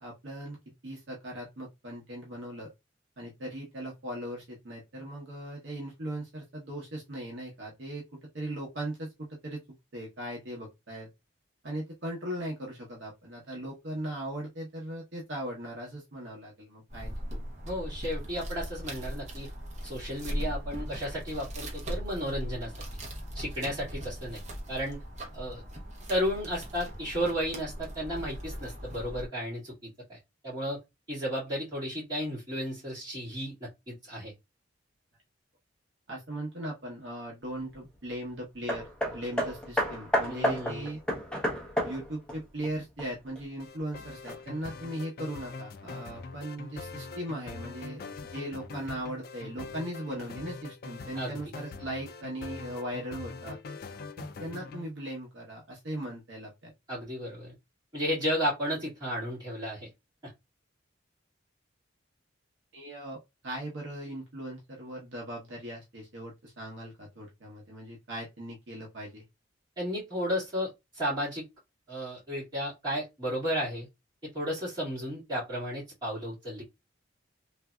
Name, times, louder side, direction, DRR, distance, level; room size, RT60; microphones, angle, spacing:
voice 1, 0.0-0.6 0.8-2.7 3.2-9.6 9.9-11.1 11.6-17.4 36.1-41.0 41.8-53.6 54.2-56.7 62.7-69.2, right 1 dB, 70° right, 0.9 m, -39 dB
sound 1, 16.9-29.3, equal, 40° right, 0.8 m, -39 dB
voice 2, 17.7-19.5 19.8-22.7 23.3-24.4 24.7-25.0 25.3-25.6 26.1-30.2 30.4-30.8 31.1-33.6 33.9-34.3 40.3-40.8 51.1-51.4 56.9-57.5 57.9-59.9 69.8-71.4 71.9-73.9 74.2-76.6, equal, 25° right, 2.1 m, -33 dB
Hammer, 38.7-43.4 44.2-44.3, equal, 5° left, 0.8 m, -31 dB
sound 2, 43.6-54.9, left 4 dB, 50° left, 0.3 m, -43 dB
3.2 x 2.6 x 2.2 m
head